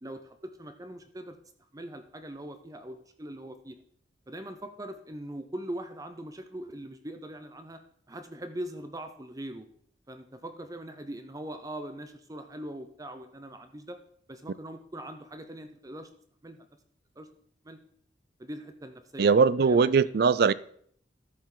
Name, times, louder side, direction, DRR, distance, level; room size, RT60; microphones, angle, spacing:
voice 1, 0.0-1.4 1.7-3.8 4.3-7.8 8.1-9.7 10.1-14.0 14.3-16.1 16.4-16.6 17.2-17.3 17.6-17.8 18.4-19.9, right 1 dB, 20° right, 0.7 m, -41 dB
voice 2, 19.2-20.5, right 5 dB, 55° right, 0.4 m, -21 dB
13.5 x 7.6 x 3.9 m
head